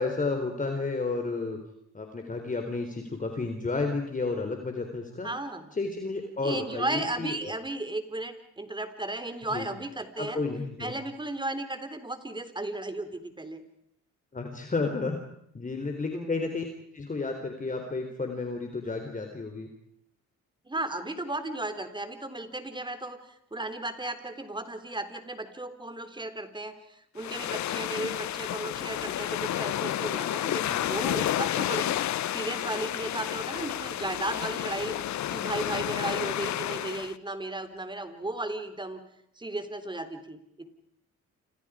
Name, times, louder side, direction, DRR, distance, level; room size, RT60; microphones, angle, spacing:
voice 1, 0.0-1.6 1.9-5.3 5.7-7.6 9.5-9.7 10.2-10.9 14.3-15.2 15.5-16.6 16.9-19.7, left 3 dB, 25° left, 4 dB, 3.8 m, -31 dB
voice 2, 5.2-5.7 6.4-10.4 10.8-13.6 16.1-16.3 20.7-32.0 32.3-35.0 35.3-39.0 39.4-40.7, right 2 dB, 15° right, 9 dB, 3.6 m, -35 dB
sound 1, 27.2-37.2, left 12 dB, 65° left, 0.9 m, -31 dB
29.0 x 27.5 x 5.0 m, 0.74 s
cardioid pair, 90°, 30 cm